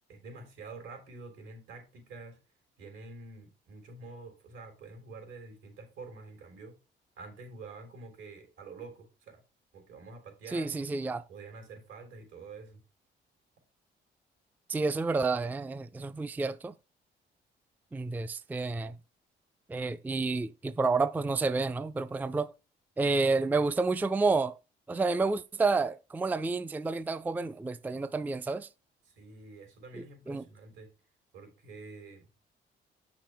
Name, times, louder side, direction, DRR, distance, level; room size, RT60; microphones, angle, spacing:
voice 1, 0.1-2.4 2.8-6.8 7.2-9.4 9.7-10.8 11.3-12.8 29.1-30.9 31.3-32.3, right 3 dB, 80° right, 3.8 m, -47 dB
voice 2, 10.5-11.2 14.7-16.7 17.9-19.0 19.7-22.5 23.0-24.6 24.9-28.7 30.0-30.4, right 3 dB, 10° right, 0.4 m, -30 dB
8.3 x 5.9 x 3.5 m
cardioid pair, 90°, 20 cm